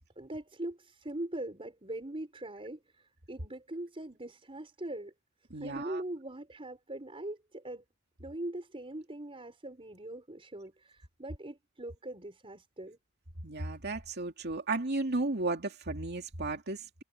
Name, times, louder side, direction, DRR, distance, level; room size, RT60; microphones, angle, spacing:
voice 1, 0.2-2.8 3.3-5.1 5.5-7.8 8.2-13.0, right 1 dB, 25° right, 5.2 m, -41 dB
voice 2, 5.5-6.0 13.4-17.0, right 2 dB, 55° right, 2.6 m, -34 dB
head